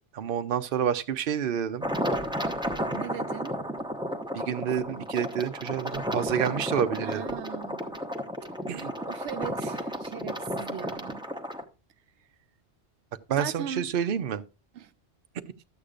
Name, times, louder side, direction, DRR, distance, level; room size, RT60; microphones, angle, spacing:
voice 1, 0.1-1.9 4.3-7.2 8.7-8.9 13.3-14.4, right 9 dB, 55° right, 0.9 m, -28 dB
sound 1, 1.8-11.6, equal, 5° right, 1.0 m, -33 dB
voice 2, 2.9-3.5 7.0-8.0 9.1-11.2 13.4-13.9 14.7-14.9, right 9 dB, 90° right, 0.9 m, -38 dB
12.5 x 8.3 x 2.4 m
omnidirectional pair, 1.1 m